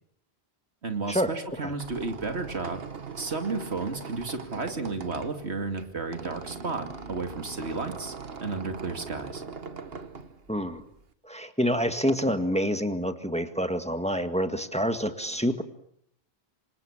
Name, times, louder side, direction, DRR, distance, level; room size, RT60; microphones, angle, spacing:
voice 1, 0.8-2.8 3.2-8.1 8.4-9.4, right 3 dB, 90° right, 6 dB, 2.8 m, -32 dB
Squeak, 1.5-11.1, right 5 dB, 65° right, 1.6 m, -41 dB
voice 2, 10.5-10.8 11.2-15.6, equal, 5° left, 8 dB, 1.9 m, -27 dB
27.5 x 26.0 x 7.4 m, 0.68 s
omnidirectional pair, 1.1 m